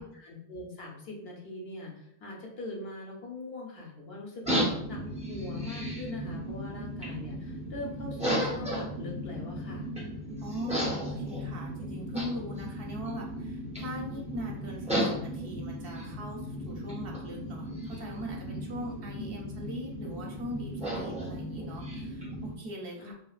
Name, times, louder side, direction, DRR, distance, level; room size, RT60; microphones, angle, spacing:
voice 1, 0.0-4.5 4.9-5.0 5.3-9.9 19.2-19.3 23.0-23.1, left 2 dB, 65° left, -1 dB, 0.9 m, -41 dB
sound 1, 4.4-22.5, equal, 10° right, 0.4 m, -35 dB
voice 2, 10.4-23.1, equal, 65° right, 0 dB, 0.8 m, -40 dB
3.0 x 2.3 x 2.3 m, 0.73 s
omnidirectional pair, 1.1 m